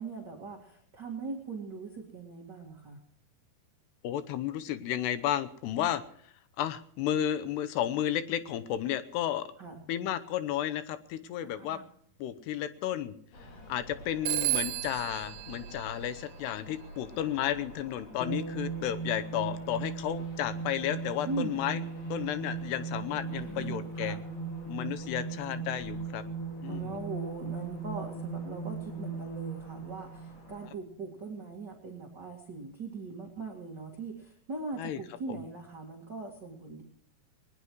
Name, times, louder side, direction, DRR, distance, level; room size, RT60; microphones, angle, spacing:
voice 1, 0.0-3.0 9.6-9.8 11.6-11.9 21.2-21.6 23.3-24.3 26.7-36.8, right 3 dB, 35° right, 0 dB, 2.1 m, -40 dB
voice 2, 4.0-6.0 6.6-9.5 9.9-11.8 12.2-13.1 13.7-21.8 22.1-24.2 24.7-26.2 26.6-27.0 34.8-35.0 35.3-35.4, left 11 dB, 90° left, 11 dB, 3.1 m, -32 dB
sound 1, 13.3-30.7, equal, 50° left, 5.9 m, -51 dB
Telephone, 14.3-16.8, right 19 dB, 85° right, 2.8 m, -34 dB
sound 2, 18.2-31.0, right 5 dB, 15° left, 5.9 m, -38 dB
20.5 x 20.0 x 3.1 m, 0.64 s
omnidirectional pair, 4.6 m